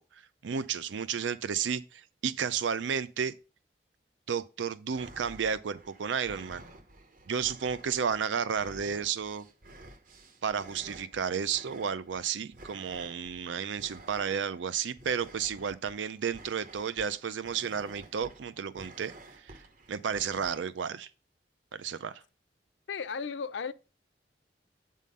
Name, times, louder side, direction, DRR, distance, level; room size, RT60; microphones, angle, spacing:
voice 1, 0.1-3.3 4.3-6.6 7.3-9.4 10.4-19.6 19.9-21.1 21.7-22.2, right 7 dB, 85° right, 0.5 m, -32 dB
sound 1, 4.9-20.6, right 2 dB, 50° right, 1.0 m, -52 dB
voice 2, 22.9-23.7, left 5 dB, 85° left, 0.5 m, -35 dB
8.3 x 3.8 x 5.3 m
head